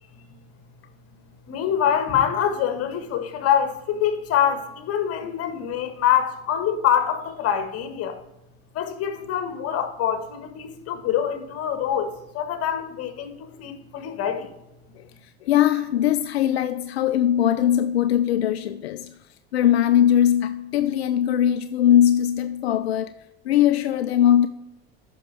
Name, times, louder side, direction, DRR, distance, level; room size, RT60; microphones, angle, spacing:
voice 1, 1.5-8.2 8.7-14.5, left 9 dB, 50° left, 1.7 m, -25 dB
voice 2, 14.9-19.2 19.5-23.2 23.4-24.5, left 10 dB, 90° left, 0.5 m, -20 dB
8.8 x 6.0 x 4.8 m
hypercardioid pair, 80°, 31 cm